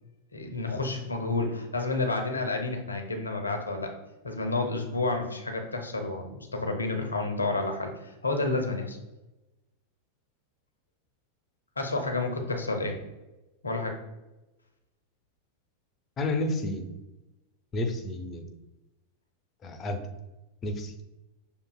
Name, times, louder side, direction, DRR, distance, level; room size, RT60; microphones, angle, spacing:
voice 1, 0.3-3.9 4.2-9.0 11.8-13.0 13.6-14.0, left 3 dB, 75° left, 4 dB, 0.6 m, -30 dB
voice 2, 16.2-16.9 17.7-18.4 19.6-20.0 20.6-20.9, left 2 dB, 25° left, 6 dB, 0.5 m, -30 dB
6.0 x 2.7 x 2.2 m, 1.0 s
figure-of-eight pair, 90°, 0 cm